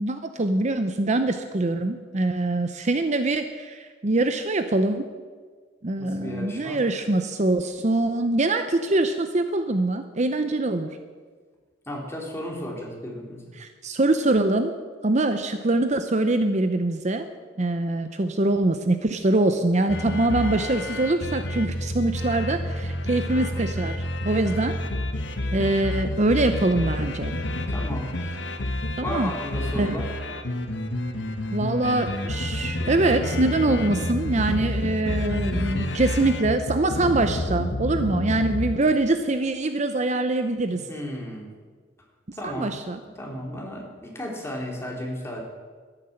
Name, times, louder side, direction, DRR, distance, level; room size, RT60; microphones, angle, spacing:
voice 1, 0.0-5.1 5.8-10.9 13.6-14.7 15.0-17.3 17.6-24.7 25.5-27.3 29.0-29.3 29.8-30.0 31.5-40.8 42.4-43.0, right 2 dB, 40° right, 9 dB, 0.7 m, -24 dB
voice 2, 6.0-6.8 11.8-13.4 27.7-28.3 29.0-30.1 40.9-41.5 42.3-42.7 43.1-45.4, equal, 15° left, -1 dB, 3.0 m, -34 dB
sound 1, 19.9-38.8, left 1 dB, 65° left, 1.3 m, -29 dB
13.0 x 10.5 x 7.8 m, 1.5 s
head